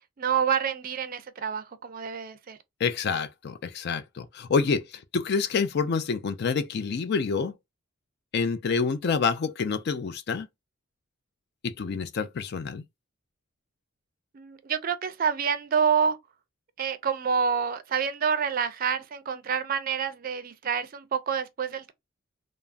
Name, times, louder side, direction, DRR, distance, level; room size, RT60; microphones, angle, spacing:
voice 1, 0.2-2.6 14.3-16.2 16.8-21.9, right 7 dB, 45° right, 0.4 m, -27 dB
voice 2, 2.8-7.5 8.3-10.5 11.6-12.8, left 5 dB, 50° left, 0.4 m, -27 dB
3.4 x 2.0 x 2.4 m
head